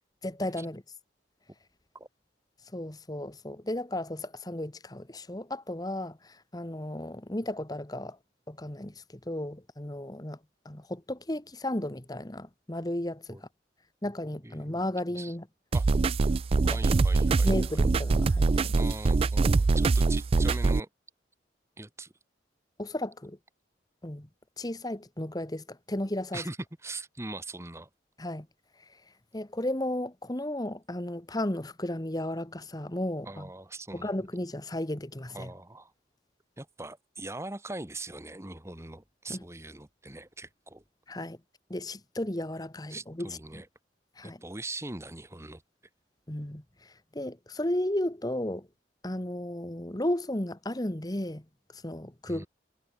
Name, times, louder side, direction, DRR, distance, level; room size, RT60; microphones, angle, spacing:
voice 1, 0.2-0.8 2.7-8.2 8.5-10.4 10.6-13.5 14.0-15.5 16.6-16.8 17.4-18.8 22.8-23.4 24.0-24.3 24.6-26.4 28.2-28.5 29.3-33.5 33.9-35.5 39.3-39.4 41.1-41.4 41.7-43.6 44.2-44.4 46.3-48.7 49.0-51.4 51.7-52.5, left 1 dB, 20° left, 1.3 m, -34 dB
voice 2, 14.4-14.8 15.1-15.3 15.7-15.9 16.6-17.8 18.7-20.9 21.8-22.1 26.3-26.6 26.8-27.9 33.2-34.1 35.3-35.9 36.6-40.8 42.9-43.7 44.2-45.6 52.3-52.5, right 2 dB, 15° right, 1.2 m, -41 dB
sound 1, 15.7-20.8, right 3 dB, 30° right, 0.3 m, -24 dB
head